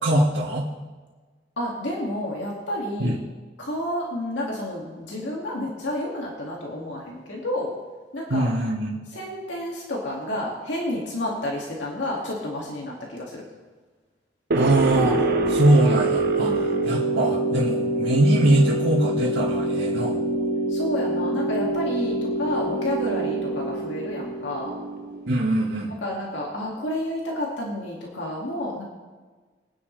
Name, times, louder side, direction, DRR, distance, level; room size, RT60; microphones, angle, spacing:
voice 1, 0.0-0.7 3.0-3.2 8.3-9.0 14.5-20.2 25.3-25.9, right 1 dB, 85° right, -8 dB, 2.0 m, -22 dB
voice 2, 1.6-3.2 3.6-7.7 8.1-8.5 9.1-13.4 16.4-17.1 20.7-24.7 26.0-28.8, left 1 dB, 75° left, -3 dB, 2.5 m, -30 dB
sound 1, 14.5-25.4, right 2 dB, 55° right, 1.0 m, -25 dB
23.0 x 9.9 x 3.4 m, 1.4 s
head